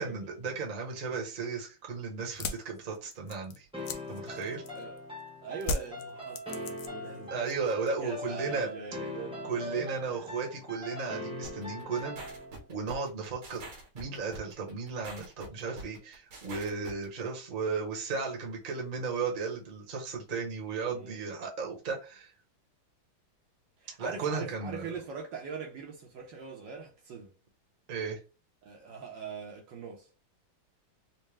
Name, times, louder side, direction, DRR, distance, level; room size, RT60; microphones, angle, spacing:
voice 1, 0.0-3.7 4.1-4.6 7.3-8.7 9.4-12.2 12.7-13.6 13.9-22.3 24.0-24.8 27.9-28.2, right 5 dB, 35° right, 0.9 m, -35 dB
sound 1, 2.2-5.0 5.6-7.2 7.4-8.0, left 3 dB, 75° left, 1.1 m, -37 dB
sound 2, 3.7-12.6, left 1 dB, 5° right, 0.6 m, -41 dB
voice 2, 5.4-7.3 8.0-10.2 20.9-21.2 23.8-27.3 28.6-30.1, right 5 dB, 65° right, 1.4 m, -42 dB
sound 3, 11.4-17.1, right 2 dB, 85° right, 1.9 m, -45 dB
4.3 x 2.2 x 3.3 m
omnidirectional pair, 2.3 m